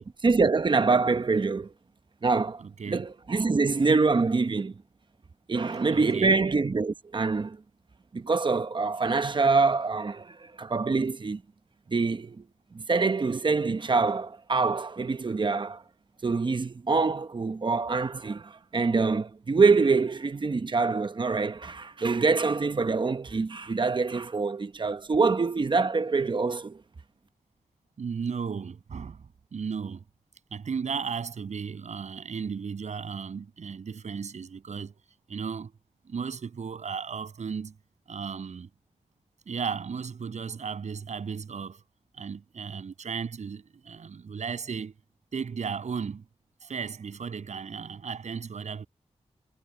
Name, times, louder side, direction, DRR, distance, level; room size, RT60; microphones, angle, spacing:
voice 1, 0.0-1.7 2.2-4.8 5.5-7.6 8.1-11.4 11.9-12.4 12.7-15.8 16.2-26.8, right 4 dB, 45° right, 0.9 m, -25 dB
voice 2, 2.6-3.1 5.6-6.4 28.0-30.0 30.5-35.0 35.3-35.7 36.0-37.7 38.1-38.7 39.5-41.8 42.2-44.9 45.3-46.2 46.6-48.9, right 6 dB, 90° right, 7.9 m, -35 dB
wide cardioid pair, 90°, 12 cm